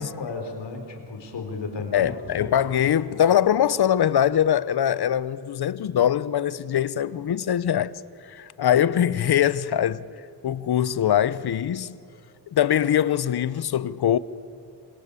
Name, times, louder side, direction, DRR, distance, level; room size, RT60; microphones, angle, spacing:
voice 1, 0.0-2.5 8.6-8.7, left 4 dB, 80° left, 4.1 m, -34 dB
voice 2, 1.9-7.9 8.3-10.0 10.4-12.0 12.5-14.2, left 10 dB, 65° left, 0.9 m, -22 dB
28.0 x 25.5 x 8.4 m
wide cardioid pair, 120°, 42 cm